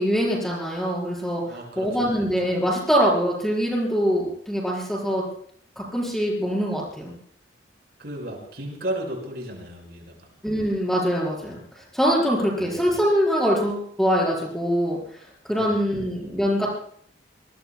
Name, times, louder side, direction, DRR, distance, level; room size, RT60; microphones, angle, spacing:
voice 1, 0.0-5.2 5.7-7.1 10.4-15.0 15.4-16.7, equal, ahead, -4 dB, 4.9 m, -23 dB
voice 2, 1.5-2.3 8.0-10.3 12.6-12.7 15.5-15.8, right 1 dB, 60° right, 1 dB, 5.8 m, -34 dB
27.0 x 21.0 x 2.3 m, 0.63 s
head